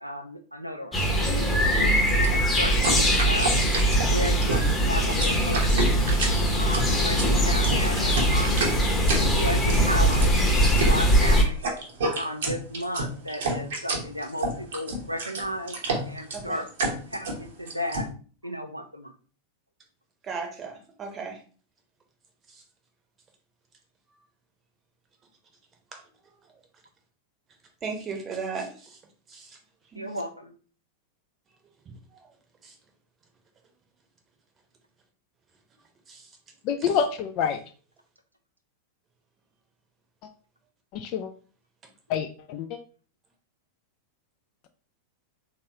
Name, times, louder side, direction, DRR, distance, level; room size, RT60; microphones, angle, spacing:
voice 1, 0.0-3.5 4.0-6.0 6.6-8.8 9.3-10.4 10.7-11.7 12.2-15.8 16.1-16.7 17.1-18.1 18.4-19.1 29.9-30.5, equal, 90° right, 6 dB, 0.5 m, -34 dB
sound 1, 0.9-11.4, equal, 15° left, 0.9 m, -22 dB
sound 2, 2.1-18.1, right 2 dB, 60° right, 0.9 m, -30 dB
voice 2, 4.0-4.4 16.3-16.6 20.2-21.4 22.5-22.6 25.9-26.0 27.8-29.0 29.3-29.6 29.9-30.2 31.8-32.3 32.6-32.7 36.1-36.3 36.8-37.0, right 4 dB, 25° right, 3 dB, 0.8 m, -37 dB
voice 3, 36.7-37.6 40.9-41.3 42.1-42.8, left 7 dB, 40° left, 6 dB, 0.3 m, -27 dB
3.6 x 2.9 x 2.8 m, 0.40 s
figure-of-eight pair, 90°, 0 cm